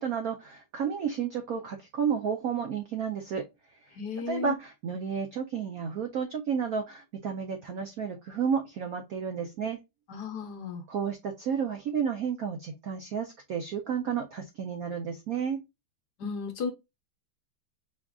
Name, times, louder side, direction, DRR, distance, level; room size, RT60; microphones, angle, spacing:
voice 1, 0.0-3.4 4.3-9.8 10.9-15.6, right 7 dB, 80° right, 0.8 m, -31 dB
voice 2, 4.0-4.5 10.1-10.8 16.2-16.7, left 5 dB, 65° left, 1.1 m, -34 dB
4.9 x 3.6 x 2.3 m
omnidirectional pair, 2.4 m